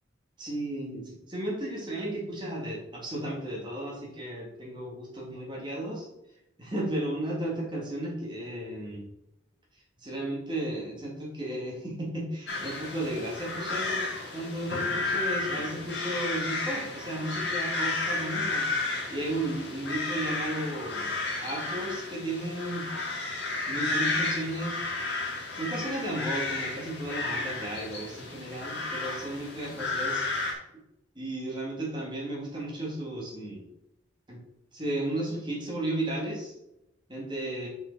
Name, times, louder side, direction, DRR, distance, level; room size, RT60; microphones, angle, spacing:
voice 1, 0.4-6.1 6.6-9.0 10.0-14.0 14.3-21.1 21.4-22.9 23.7-24.8 25.5-30.6 31.2-33.6 34.3-34.4 34.7-36.5 37.1-37.7, right 1 dB, 25° right, -3 dB, 2.3 m, -34 dB
sound 1, 12.5-30.5, left 3 dB, 55° left, 1.9 m, -32 dB
6.1 x 5.4 x 4.6 m, 0.85 s
head